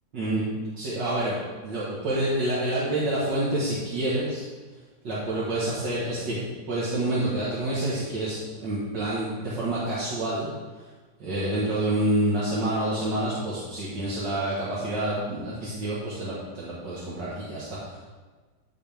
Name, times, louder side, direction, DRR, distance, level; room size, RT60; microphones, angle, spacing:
voice 1, 0.1-0.5 0.7-1.4 1.6-4.4 5.0-6.4 6.7-10.5 11.2-18.0, right 1 dB, 70° right, -8 dB, 2.1 m, -28 dB
13.5 x 4.6 x 3.5 m, 1.4 s
omnidirectional pair, 2.1 m